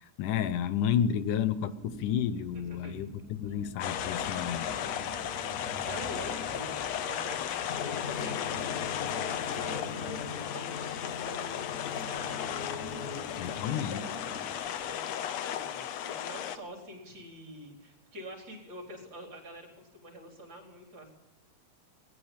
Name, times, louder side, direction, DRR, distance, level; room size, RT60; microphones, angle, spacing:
voice 1, 0.0-4.7 13.4-14.0, left 9 dB, 85° left, 12 dB, 2.5 m, -31 dB
sound 1, 1.7-15.0, equal, 25° left, 3.1 m, -47 dB
voice 2, 2.5-3.0 3.5-3.6 5.8-14.3 14.9-21.1, left 1 dB, 35° right, 1 dB, 5.0 m, -46 dB
sound 2, 3.8-16.6, left 10 dB, 65° left, 2.0 m, -35 dB
sound 3, 7.7-13.5, left 5 dB, 50° left, 1.1 m, -41 dB
21.0 x 18.5 x 7.4 m, 0.91 s
omnidirectional pair, 3.5 m